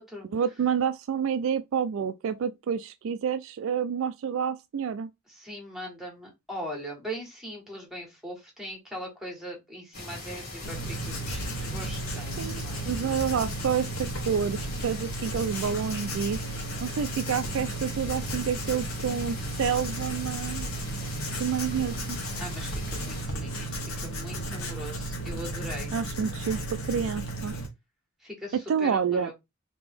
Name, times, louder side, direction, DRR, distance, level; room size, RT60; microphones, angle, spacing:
voice 1, 0.3-5.1 12.4-20.7 21.4-22.2 25.9-26.6 26.9-27.5 28.7-29.3, right 7 dB, 65° right, 0.3 m, -29 dB
voice 2, 5.3-12.9 22.4-25.9 28.2-29.3, equal, ahead, 1.5 m, -40 dB
sound 1, 9.9-23.2, left 2 dB, 45° left, 1.8 m, -41 dB
Writing, 10.6-27.7, right 1 dB, 70° left, 1.2 m, -34 dB
3.3 x 2.9 x 3.5 m
head